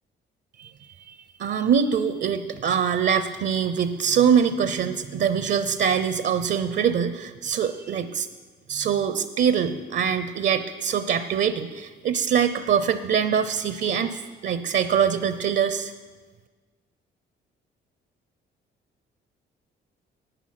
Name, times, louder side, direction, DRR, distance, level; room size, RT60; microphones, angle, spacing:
voice 1, 1.1-8.3 8.7-15.9, right 7 dB, 60° right, 11 dB, 0.6 m, -23 dB
11.0 x 9.1 x 5.8 m, 1.4 s
cardioid pair, 90°, 20 cm